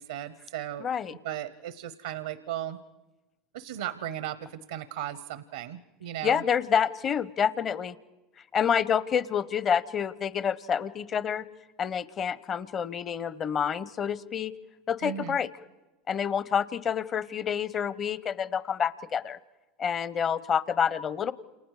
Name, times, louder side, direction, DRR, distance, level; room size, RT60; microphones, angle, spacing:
voice 1, 0.0-2.8 3.5-6.4 15.0-15.4, right 12 dB, 85° right, 15 dB, 0.8 m, -36 dB
voice 2, 0.8-1.1 6.2-7.9 8.5-11.4 11.8-14.5 14.9-15.5 16.1-19.4 19.8-21.3, left 7 dB, 35° left, 17 dB, 0.9 m, -28 dB
29.0 x 28.5 x 4.9 m, 1.1 s
hypercardioid pair, 95°, 0 cm